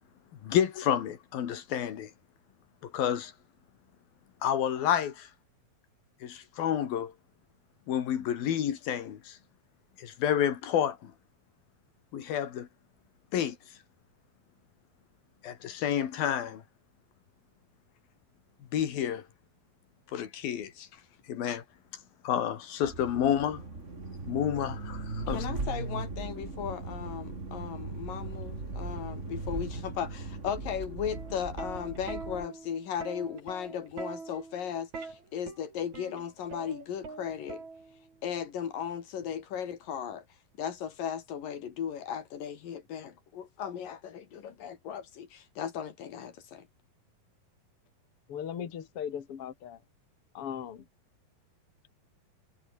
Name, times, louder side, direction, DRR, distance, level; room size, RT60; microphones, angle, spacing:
voice 1, 0.4-2.1 2.8-3.3 4.4-5.3 6.2-7.1 7.9-9.4 10.0-11.1 12.1-12.7 13.3-13.6 15.4-16.6 18.7-19.3 20.1-20.9 21.3-21.6 22.2-23.6 24.2-25.5, left 9 dB, 85° left, 4.0 m, -29 dB
sound 1, 22.8-32.5, right 3 dB, 20° right, 3.0 m, -38 dB
voice 2, 25.3-37.7 38.2-40.2 40.6-46.7, left 8 dB, 70° left, 4.2 m, -36 dB
Plucked string instrument, 31.1-38.2 39.2-39.5, right 4 dB, 55° right, 6.8 m, -43 dB
voice 3, 48.3-49.8 50.3-50.8, left 8 dB, 45° left, 2.7 m, -38 dB
omnidirectional pair, 4.1 m